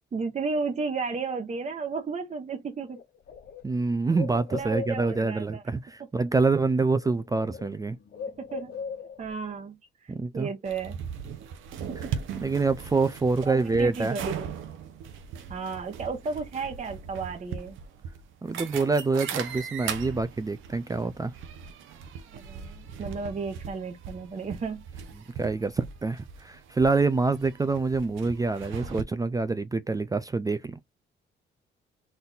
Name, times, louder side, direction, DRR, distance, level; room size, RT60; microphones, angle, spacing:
voice 1, 0.1-3.0 4.1-5.6 8.4-8.7 9.2-9.8 10.1-11.0 11.9-12.0 13.5-14.5 15.5-17.8 22.3-24.8, right 4 dB, 35° right, 0.9 m, -33 dB
Bird, 2.5-2.6 2.9-5.4 6.5-6.7 7.0-9.4, left 6 dB, 55° left, 0.9 m, -39 dB
voice 2, 3.6-8.0 10.1-10.5 12.4-14.2 18.4-21.3 25.4-30.8, right 3 dB, 20° right, 0.4 m, -26 dB
sound 1, 10.7-29.0, right 7 dB, 80° right, 0.8 m, -39 dB
4.1 x 2.6 x 3.9 m
cardioid pair, 90°, 20 cm